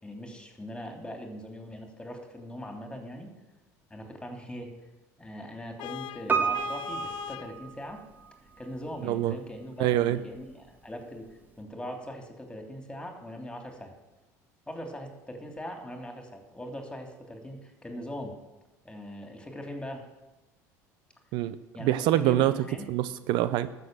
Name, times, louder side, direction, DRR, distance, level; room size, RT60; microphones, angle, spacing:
voice 1, 0.0-3.3 3.9-4.7 5.2-8.0 8.6-11.2 11.6-13.9 14.7-18.3 18.8-20.0 21.7-22.9, equal, 10° left, 3 dB, 3.1 m, -40 dB
Vehicle horn car horn honking, 5.8-7.6, left 15 dB, 65° left, 0.5 m, -39 dB
Piano, 6.3-8.3 8.6-8.7, right 5 dB, 20° right, 1.6 m, -30 dB
voice 2, 9.8-10.2 21.3-22.5 22.9-23.7, right 13 dB, 65° right, 14 dB, 0.6 m, -25 dB
13.0 x 6.9 x 7.5 m, 1.0 s
hypercardioid pair, 80°, 8 cm